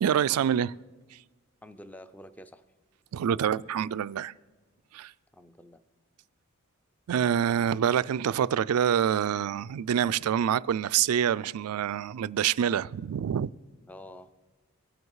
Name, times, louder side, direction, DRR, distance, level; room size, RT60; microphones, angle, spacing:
voice 1, 0.0-0.7 1.1-1.2 3.1-4.3 4.9-5.1 7.1-13.5, right 9 dB, 85° right, 0.3 m, -26 dB
voice 2, 1.6-2.6 5.3-5.8 13.9-14.4, left 1 dB, 5° left, 0.4 m, -48 dB
22.5 x 7.9 x 4.8 m
head